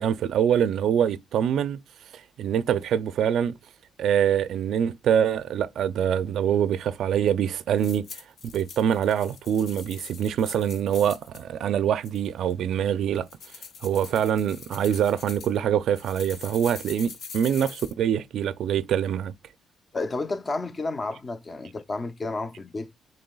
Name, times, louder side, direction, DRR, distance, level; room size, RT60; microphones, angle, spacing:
voice 1, 0.0-1.8 2.4-3.5 4.0-8.1 8.5-13.3 13.8-19.3, right 9 dB, 75° right, 0.4 m, -24 dB
sound 1, 7.8-11.4 12.0-12.5 13.1-15.6 16.0-17.9, left 5 dB, 70° left, 0.8 m, -43 dB
voice 2, 19.9-22.9, left 3 dB, 35° left, 0.6 m, -31 dB
6.7 x 3.1 x 2.3 m
cardioid pair, 90°, 0 cm